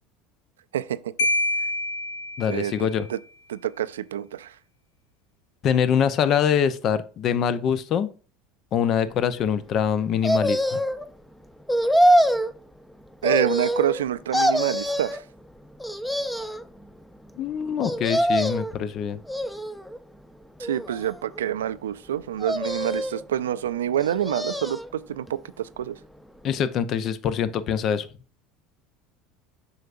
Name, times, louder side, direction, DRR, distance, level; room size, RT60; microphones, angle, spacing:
Marimba xylophone, 1.2-2.9, left 1 dB, 80° left, 0.8 m, -26 dB
voice 1, 2.4-3.1 5.6-8.1 8.7-10.8 17.4-19.2 26.4-28.1, left 8 dB, 50° left, 0.7 m, -24 dB
voice 2, 3.5-4.5 13.2-15.2 20.6-26.0, right 10 dB, 85° right, 0.3 m, -27 dB
sound 1, 10.2-11.0 11.7-12.5 13.2-14.0 14.3-15.2 15.8-16.6 17.8-18.7 19.3-20.0 20.6-21.4 22.4-23.2 24.0-24.9 25.3-25.4, equal, 5° left, 0.6 m, -24 dB
7.7 x 5.7 x 2.5 m
hypercardioid pair, 80°, 0 cm